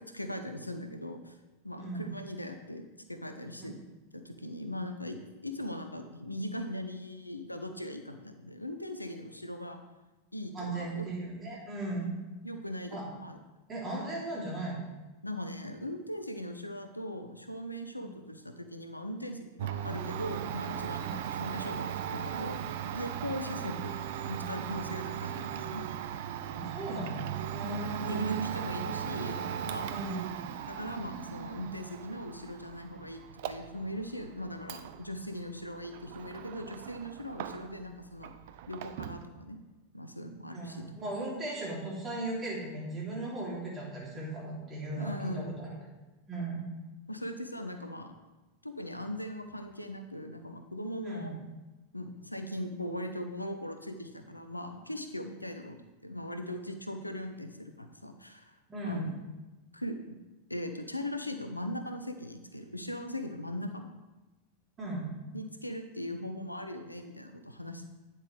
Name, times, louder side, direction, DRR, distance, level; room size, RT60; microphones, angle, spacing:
voice 1, 0.0-1.4 1.6-2.8 3.1-3.7 4.1-9.8 10.3-11.0 12.4-13.4 15.2-22.6 22.9-23.9 24.3-25.8 28.1-29.4 29.6-29.9 30.7-38.3 38.7-39.6 39.9-40.8 44.9-45.6 47.1-48.1 48.6-51.4 51.9-59.2 59.7-60.2 60.5-63.8 65.3-67.8, left 1 dB, 85° left, 6 dB, 0.7 m, -39 dB
voice 2, 1.7-2.1 10.5-12.1 12.9-13.0 13.7-14.8 21.0-21.1 26.5-28.5 29.9-30.2 40.5-45.8 46.3-46.6 51.0-51.3 58.7-59.1 64.8-65.1, right 2 dB, 25° right, -4 dB, 3.3 m, -37 dB
Domestic sounds home sounds, 19.6-37.9 38.2-39.3, right 9 dB, 50° right, 0.4 m, -38 dB
9.5 x 7.5 x 3.4 m, 1.1 s
figure-of-eight pair, 90°, 0 cm